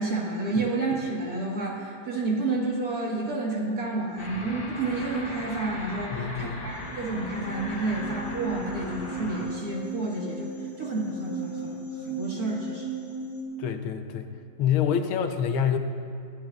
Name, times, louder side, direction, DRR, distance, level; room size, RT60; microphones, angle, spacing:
voice 1, 0.0-10.5 10.8-11.8 12.1-12.9, right 2 dB, 45° right, -4 dB, 2.1 m, -30 dB
sound 1, 4.2-9.4, left 1 dB, 50° left, 2.3 m, -38 dB
voice 2, 6.1-6.7 13.6-14.3 14.6-15.8, left 8 dB, 80° left, 7 dB, 1.5 m, -26 dB
sound 2, 6.7-13.4, right 3 dB, 20° right, 1.4 m, -37 dB
25.5 x 8.9 x 2.4 m, 2.3 s
omnidirectional pair, 2.4 m